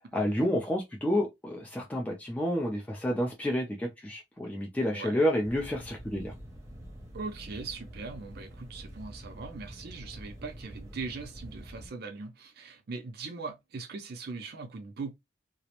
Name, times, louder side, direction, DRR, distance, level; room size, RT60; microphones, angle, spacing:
voice 1, 0.1-6.3, equal, 10° left, 0.4 m, -29 dB
voice 2, 4.9-5.2 7.1-15.1, right 4 dB, 60° right, 0.4 m, -40 dB
sound 1, 5.4-11.9, equal, 15° right, 0.7 m, -46 dB
2.4 x 2.0 x 2.8 m
head